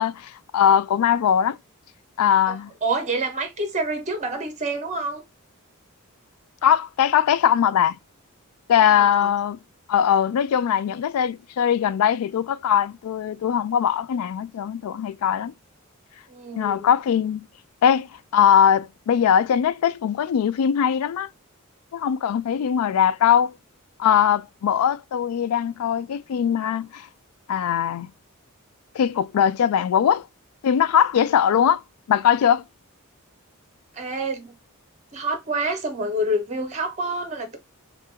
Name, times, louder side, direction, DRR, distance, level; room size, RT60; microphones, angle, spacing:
voice 1, 0.0-1.6 2.2-2.7 6.6-8.0 8.7-9.6 9.9-15.5 16.5-17.5 17.8-21.3 21.9-23.5 24.0-27.1 27.5-28.1 28.9-30.3 30.6-31.8 32.1-32.6, left 8 dB, 85° left, 0.3 m, -21 dB
voice 2, 2.5-5.2 8.8-9.3 16.3-16.9 33.9-34.5 35.1-37.6, right 2 dB, 35° right, 1.1 m, -28 dB
3.2 x 2.8 x 3.6 m
head